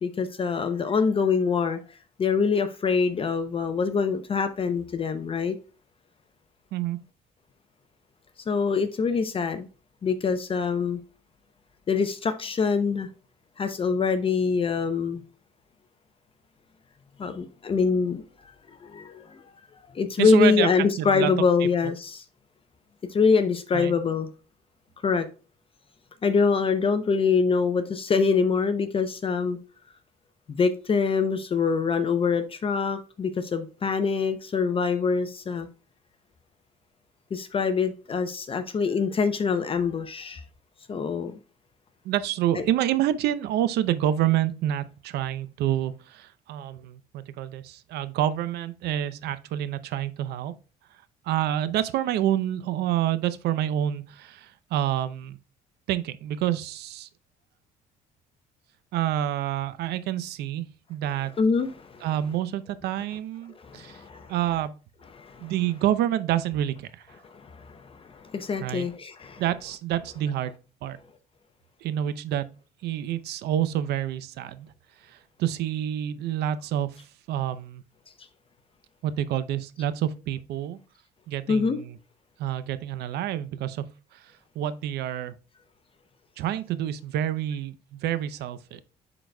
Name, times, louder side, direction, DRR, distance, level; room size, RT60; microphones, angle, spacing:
voice 1, 0.0-1.8 2.2-5.6 8.5-9.7 10.0-11.0 11.9-13.1 13.6-15.2 17.2-18.5 18.8-19.4 19.9-22.2 23.1-24.3 25.0-25.3 26.2-29.6 30.5-35.7 37.3-40.4 40.9-41.4 42.5-42.6 61.0-62.4 63.5-64.7 65.0-65.9 67.1-70.5 81.5-81.8, left 5 dB, 35° left, 0.6 m, -25 dB
voice 2, 20.2-20.7 21.0-21.3 21.6-21.7 23.7-23.9 42.0-50.5 51.2-55.4 55.9-57.1 58.9-61.3 62.0-64.0 64.3-64.8 65.4-67.1 68.6-68.9 69.4-70.5 70.8-71.0 71.8-72.5 72.8-74.7 75.0-77.8 79.0-80.8 81.3-82.0 82.4-83.8 84.1-85.3 86.4-88.8, right 11 dB, 75° right, 0.6 m, -28 dB
10.5 x 4.0 x 2.2 m
cardioid pair, 110°, 17 cm